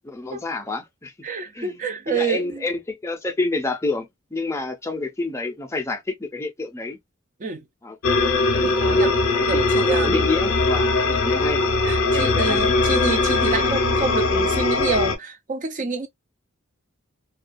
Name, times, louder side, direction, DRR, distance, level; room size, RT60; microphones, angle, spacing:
voice 1, 0.1-1.1 1.5-1.8 2.1-4.1 4.3-7.0 7.8-8.0 9.3-9.6 9.9-11.6 12.1-12.6, left 3 dB, 15° left, 0.5 m, -28 dB
voice 2, 1.2-2.6 7.4-7.6 8.5-10.3 11.8-16.1, right 4 dB, 35° right, 0.5 m, -27 dB
sound 1, 8.0-15.2, left 3 dB, 65° left, 0.6 m, -20 dB
2.2 x 2.2 x 2.5 m
head